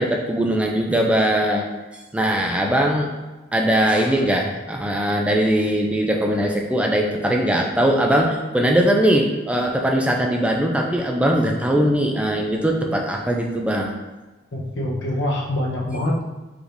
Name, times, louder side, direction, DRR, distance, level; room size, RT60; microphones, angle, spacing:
voice 1, 0.0-1.7 2.1-3.1 3.5-14.0, right 1 dB, 5° right, 1 dB, 0.3 m, -20 dB
voice 2, 14.5-16.2, left 1 dB, 85° left, -3 dB, 0.9 m, -24 dB
4.9 x 3.1 x 2.6 m, 1.2 s
head